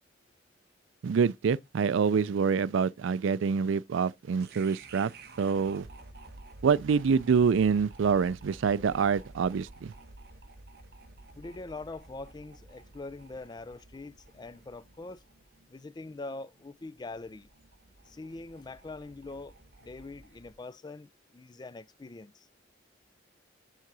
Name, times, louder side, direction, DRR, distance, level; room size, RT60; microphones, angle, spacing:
voice 1, 1.0-5.1 5.4-5.9 6.6-9.9, right 6 dB, 80° right, 0.4 m, -26 dB
sound 1, 4.4-20.6, right 2 dB, 55° right, 1.1 m, -52 dB
voice 2, 11.3-15.2 15.7-17.5 18.1-19.5 19.8-22.5, left 3 dB, 20° left, 0.3 m, -43 dB
7.4 x 3.9 x 4.7 m
head